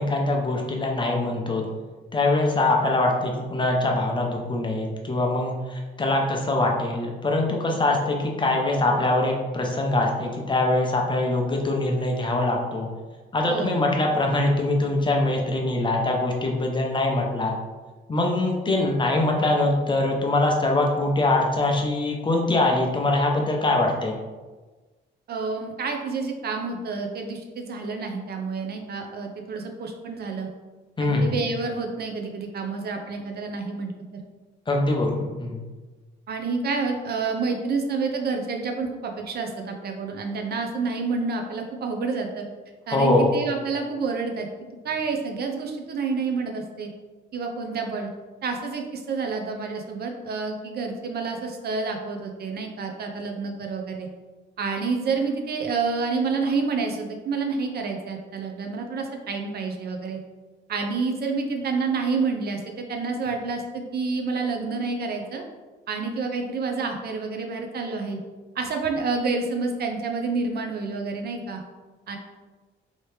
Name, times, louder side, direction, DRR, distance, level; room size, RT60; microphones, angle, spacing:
voice 1, 0.0-1.6 2.1-12.9 13.3-17.5 18.1-24.2 31.0-31.3 34.7-35.6 42.9-43.3, left 2 dB, 25° left, 0 dB, 0.7 m, -23 dB
voice 2, 13.5-14.0 25.3-30.5 31.0-33.9 36.3-42.4 42.9-44.5 44.8-46.9 47.3-48.1 48.4-54.1 54.6-60.2 60.7-65.4 65.9-68.2 68.6-71.6 72.1-72.2, right 4 dB, 55° right, 3 dB, 0.6 m, -28 dB
3.1 x 2.8 x 3.2 m, 1.3 s
cardioid pair, 90°, 20 cm